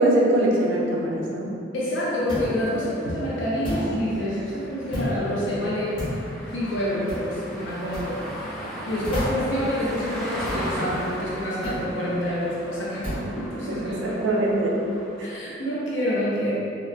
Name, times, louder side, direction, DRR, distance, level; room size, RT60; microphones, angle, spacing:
voice 1, 0.0-1.6 13.7-14.8 15.2-15.3, right 1 dB, 85° right, -2 dB, 0.4 m, -22 dB
voice 2, 1.7-6.0 6.5-8.2 8.6-14.2 15.2-16.5, equal, 80° left, -7 dB, 0.5 m, -27 dB
sound 1, 2.3-2.6 3.6-3.9 4.9-5.2 6.0-6.3 7.1-7.3 7.9-8.1 9.0-9.5 10.5-10.7 11.6-11.9 13.0-13.3, equal, 30° left, 0.7 m, -29 dB
sound 2, 2.4-15.4, equal, 5° left, 0.3 m, -38 dB
2.7 x 2.2 x 2.3 m, 2.6 s
head